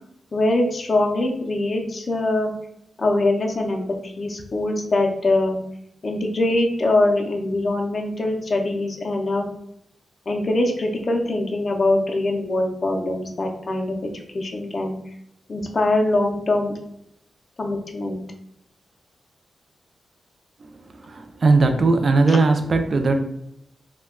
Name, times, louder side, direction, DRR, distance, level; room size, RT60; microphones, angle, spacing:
voice 1, 0.3-2.5 3.0-5.6 6.0-9.4 10.3-15.0 15.5-16.7 17.6-18.2 22.3-22.4, left 2 dB, 40° left, 1 dB, 0.4 m, -23 dB
voice 2, 21.0-23.2, right 3 dB, 45° right, 6 dB, 0.3 m, -18 dB
2.2 x 2.1 x 3.5 m, 0.78 s
wide cardioid pair, 140°, 0 cm